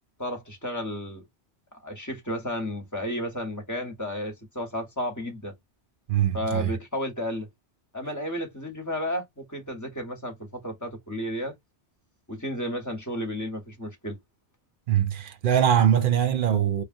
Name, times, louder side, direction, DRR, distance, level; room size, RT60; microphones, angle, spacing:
voice 1, 0.2-1.2 1.8-5.5 6.3-7.5 7.9-11.5 12.3-14.2, left 1 dB, 15° left, 1.0 m, -32 dB
voice 2, 6.1-6.8 14.9-16.8, right 9 dB, 60° right, 0.7 m, -22 dB
3.0 x 2.2 x 2.5 m
omnidirectional pair, 1.1 m